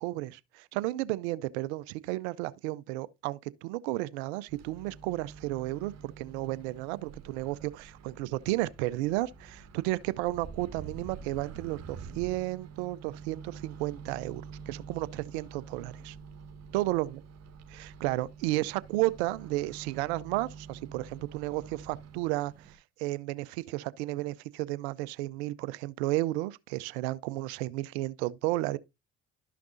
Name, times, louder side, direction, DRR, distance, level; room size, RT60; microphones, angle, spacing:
voice 1, 0.0-16.2 16.7-17.2 17.7-28.8, right 18 dB, 85° right, 0.6 m, -33 dB
Microwave oven, 4.5-22.7, right 6 dB, 55° right, 1.9 m, -47 dB
11.5 x 5.9 x 2.6 m
hypercardioid pair, 60°, 32 cm